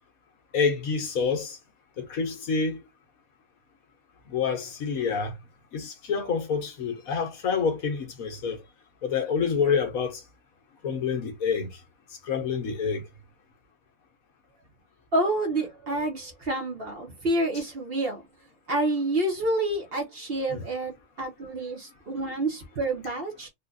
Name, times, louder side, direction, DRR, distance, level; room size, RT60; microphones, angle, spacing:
voice 1, 0.5-1.6 2.0-2.8 4.3-5.3 5.7-8.6 9.0-10.2 10.8-11.7 12.2-13.1 20.5-20.6, left 5 dB, 65° left, 1.3 m, -27 dB
voice 2, 15.1-18.2 18.7-23.5, right 1 dB, 45° right, 1.1 m, -28 dB
3.6 x 2.4 x 2.5 m
omnidirectional pair, 1.6 m